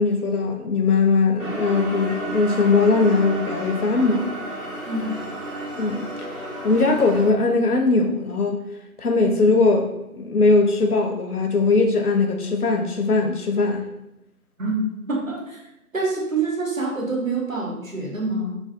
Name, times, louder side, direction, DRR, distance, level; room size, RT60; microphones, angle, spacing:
voice 1, 0.0-4.3 5.8-6.1 6.6-8.6 9.0-13.8, left 3 dB, 80° left, 4 dB, 0.6 m, -20 dB
sound 1, 1.4-7.3, right 1 dB, 85° right, 1.5 m, -32 dB
voice 2, 4.9-5.2 14.6-15.6 15.9-18.6, right 3 dB, 60° right, -2 dB, 0.9 m, -26 dB
3.3 x 2.1 x 2.6 m, 0.90 s
figure-of-eight pair, 165°, 44 cm